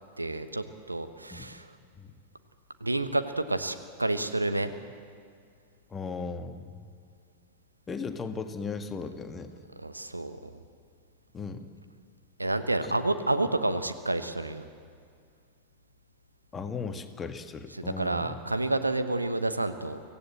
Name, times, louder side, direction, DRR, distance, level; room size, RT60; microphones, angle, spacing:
voice 1, 0.2-1.7 2.8-4.7 9.8-10.6 12.4-14.7 17.7-20.0, right 2 dB, 85° right, 10 dB, 1.1 m, -29 dB
voice 2, 5.9-6.7 7.9-9.5 11.3-11.7 12.8-12.9 16.5-18.4, left 4 dB, 20° left, 7 dB, 1.5 m, -36 dB
25.0 x 15.5 x 7.9 m, 2.2 s
figure-of-eight pair, 90°, 0 cm